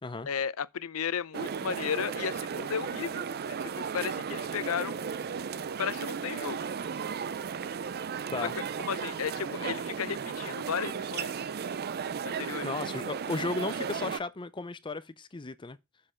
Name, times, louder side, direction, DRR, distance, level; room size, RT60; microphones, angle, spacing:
voice 1, 0.3-3.2 3.6-5.0 5.8-6.6 8.4-8.5 8.8-11.4 12.4-12.7, left 7 dB, 70° left, 0.6 m, -34 dB
sound 1, 1.3-14.2, right 6 dB, 45° right, 0.5 m, -35 dB
voice 2, 12.6-15.8, left 3 dB, 20° left, 0.5 m, -35 dB
7.5 x 6.5 x 4.4 m
head